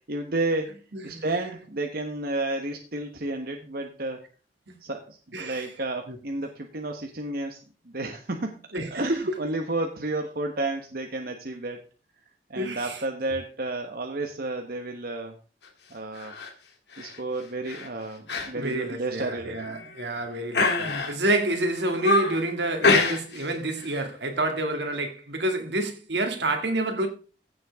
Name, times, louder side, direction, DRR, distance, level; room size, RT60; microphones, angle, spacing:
voice 1, 0.1-4.2 4.8-7.6 7.9-8.6 8.9-11.8 12.5-15.4 15.9-16.3 17.0-19.9, right 2 dB, 55° right, 1.2 m, -31 dB
voice 2, 0.9-1.3 5.3-5.7 6.1-6.2 8.7-9.3 12.6-13.0 18.5-27.1, right 1 dB, 75° right, 2.4 m, -28 dB
sound 1, 16.1-16.5 16.9-17.2 17.7-17.9 18.3-18.5 18.8-18.9 19.6-20.0 20.5-21.3 21.7-22.4 22.8-23.5 23.8-24.0, left 3 dB, 70° left, 2.5 m, -25 dB
15.5 x 7.7 x 3.6 m
head